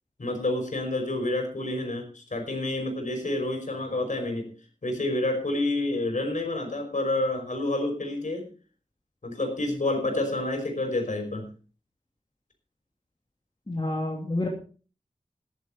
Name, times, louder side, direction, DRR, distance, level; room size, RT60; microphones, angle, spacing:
voice 1, 0.2-4.5 4.8-8.5 9.2-11.5, left 2 dB, 70° left, 3 dB, 5.5 m, -28 dB
voice 2, 13.7-14.5, left 2 dB, 35° left, -1 dB, 2.8 m, -28 dB
15.0 x 11.5 x 4.4 m, 0.38 s
wide cardioid pair, 55°, 14 cm